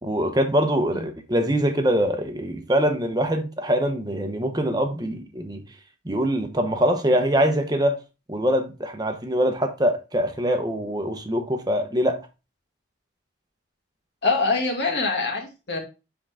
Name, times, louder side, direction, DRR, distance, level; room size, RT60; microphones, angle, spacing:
voice 1, 0.0-5.6 6.0-8.0 8.3-12.2, equal, 20° right, 0.9 m, -23 dB
voice 2, 14.2-15.8, left 3 dB, 60° left, 2.0 m, -24 dB
7.6 x 3.9 x 3.5 m
head